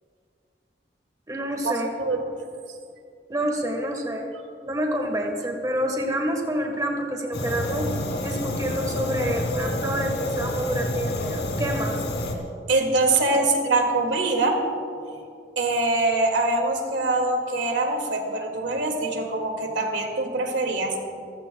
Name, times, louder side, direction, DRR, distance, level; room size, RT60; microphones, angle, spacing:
voice 1, 1.3-1.9 3.3-4.3 4.6-7.9 8.2-12.0, equal, 20° right, 2 dB, 1.4 m, -27 dB
voice 2, 2.0-2.4 12.7-14.6 15.6-20.9, right 2 dB, 85° right, 2 dB, 2.2 m, -23 dB
Fire, 7.3-12.3, left 1 dB, 75° left, 2.5 m, -28 dB
27.0 x 15.5 x 2.3 m, 2.5 s
head